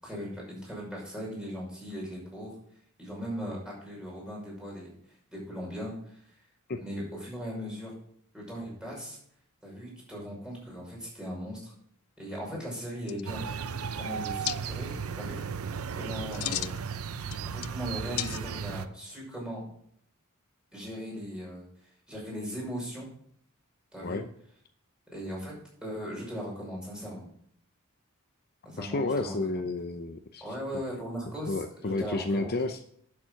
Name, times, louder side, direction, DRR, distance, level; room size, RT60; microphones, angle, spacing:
voice 1, 0.0-2.5 3.0-4.9 5.3-6.3 6.8-7.9 8.3-9.2 9.6-11.7 12.2-13.5 13.9-15.6 15.9-16.8 17.5-19.7 20.7-21.7 22.1-23.1 23.9-24.2 25.1-25.6 25.8-27.3 28.6-29.6 30.4-32.5, equal, 5° right, -5 dB, 5.9 m, -38 dB
sound 1, 13.1-13.6 14.5-14.6 16.1-16.8 17.2-17.8 18.2-18.7, left 15 dB, 85° left, 0.4 m, -34 dB
sound 2, 13.3-18.9, right 6 dB, 85° right, 0.7 m, -35 dB
voice 2, 28.8-30.4 30.7-30.8 31.5-32.8, left 2 dB, 45° left, 7 dB, 0.7 m, -31 dB
11.0 x 7.3 x 5.7 m, 0.65 s
head